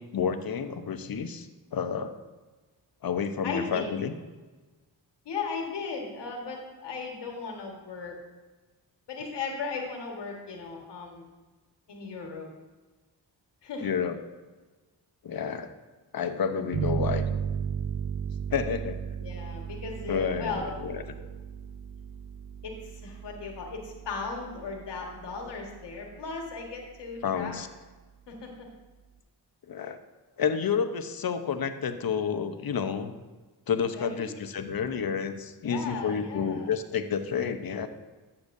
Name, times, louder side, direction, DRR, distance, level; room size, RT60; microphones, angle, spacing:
voice 1, 0.0-2.2 3.0-4.1 13.8-14.2 15.2-15.7 16.1-17.3 18.5-19.0 20.1-21.0 27.2-27.7 29.7-30.0 30.4-33.1 33.7-37.9, left 6 dB, 60° left, 9 dB, 0.9 m, -30 dB
voice 2, 3.4-3.8 5.2-8.2 9.1-11.2 11.9-12.5 13.6-13.9 19.2-20.9 22.6-27.5 28.3-28.7 33.9-34.3 35.6-36.7, left 4 dB, 85° left, 1 dB, 1.7 m, -36 dB
sound 1, 16.7-26.0, right 8 dB, 50° right, 0.7 m, -35 dB
13.0 x 7.0 x 2.7 m, 1.3 s
cardioid pair, 55°, 41 cm